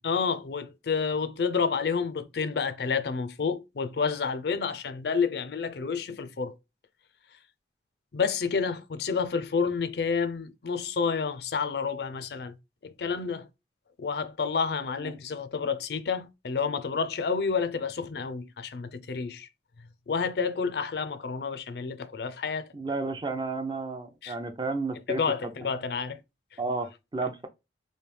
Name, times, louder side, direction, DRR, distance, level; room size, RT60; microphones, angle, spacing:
voice 1, 0.0-6.5 8.1-12.6 12.8-13.5 14.0-19.5 20.1-22.7 24.2-24.4 25.1-26.2, left 5 dB, 60° left, 0.4 m, -29 dB
voice 2, 22.7-25.7 26.6-27.5, right 3 dB, 25° right, 0.4 m, -32 dB
3.2 x 2.7 x 3.2 m
head